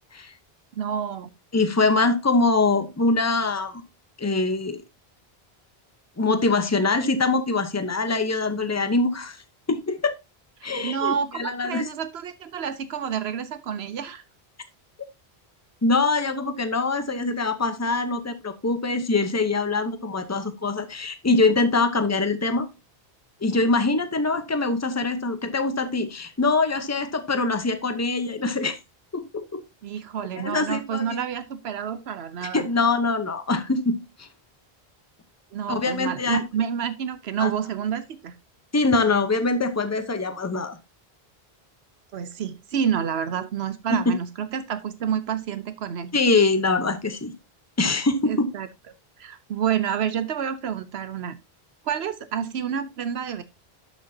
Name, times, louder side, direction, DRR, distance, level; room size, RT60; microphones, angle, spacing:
voice 1, 0.8-1.3 10.8-14.2 29.8-32.7 35.5-38.4 42.1-46.1 48.3-48.7 49.2-51.4 51.8-53.4, right 8 dB, 80° right, 12 dB, 1.0 m, -29 dB
voice 2, 1.5-3.8 4.2-4.8 6.2-9.4 9.7-10.2 10.6-11.9 15.8-22.7 23.4-28.8 29.1-29.6 30.4-31.2 32.4-34.3 35.7-36.4 37.4-37.5 38.7-40.8 46.1-47.3 47.8-48.5, left 3 dB, 15° left, 9 dB, 0.8 m, -23 dB
11.5 x 6.4 x 2.8 m, 0.24 s
omnidirectional pair, 1.0 m